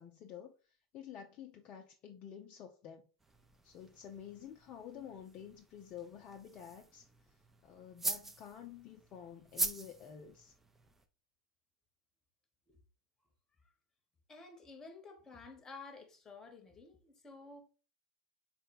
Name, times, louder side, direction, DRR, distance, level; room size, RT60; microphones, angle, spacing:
voice 1, 0.0-3.1 3.6-7.1 7.6-10.5, left 8 dB, 40° left, 0.5 m, -50 dB
sound 1, 3.2-11.0, right 2 dB, 10° right, 0.5 m, -44 dB
voice 2, 14.3-17.7, left 3 dB, 20° left, 0.9 m, -52 dB
4.0 x 2.2 x 3.9 m
hypercardioid pair, 95°, 3 cm